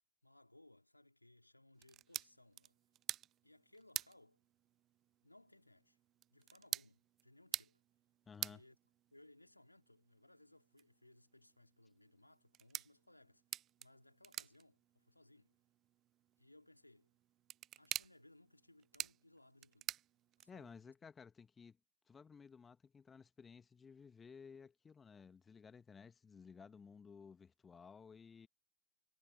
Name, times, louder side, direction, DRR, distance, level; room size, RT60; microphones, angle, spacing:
voice 1, 0.2-2.8 3.4-4.4 5.2-6.0 6.3-7.8 8.4-8.8 9.1-13.4 13.8-15.5 16.4-17.1 17.7-19.9 20.4-20.9, left 1 dB, 85° left, 3.1 m, -65 dB
sound 1, 1.8-20.8, right 12 dB, 30° right, 0.3 m, -50 dB
voice 2, 8.3-8.6 20.5-21.8 22.1-28.5, left 6 dB, 15° left, 1.5 m, -57 dB
figure-of-eight pair, 90°, 0 cm